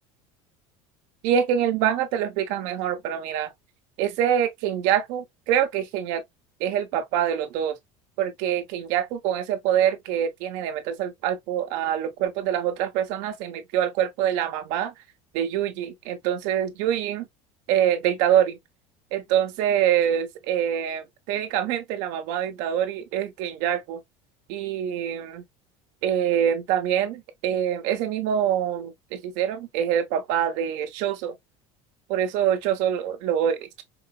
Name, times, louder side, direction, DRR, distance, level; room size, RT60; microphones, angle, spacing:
voice 1, 1.2-3.5 4.0-6.2 6.6-7.8 8.2-14.9 15.3-17.2 17.7-18.6 19.1-24.0 24.5-25.4 26.0-31.3 32.1-33.8, right 10 dB, 65° right, 1.0 m, -25 dB
4.8 x 2.0 x 2.3 m
cardioid pair, 150°, 14 cm